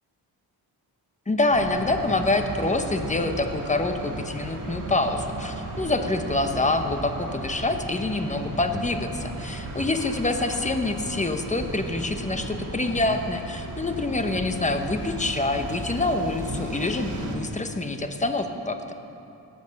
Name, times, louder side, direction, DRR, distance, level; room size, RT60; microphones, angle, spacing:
voice 1, 1.3-18.8, left 2 dB, 20° left, 6 dB, 1.0 m, -26 dB
sound 1, 1.5-17.4, right 1 dB, 50° right, 2.1 m, -35 dB
19.5 x 8.1 x 6.5 m, 2.8 s
wide cardioid pair, 120°, 38 cm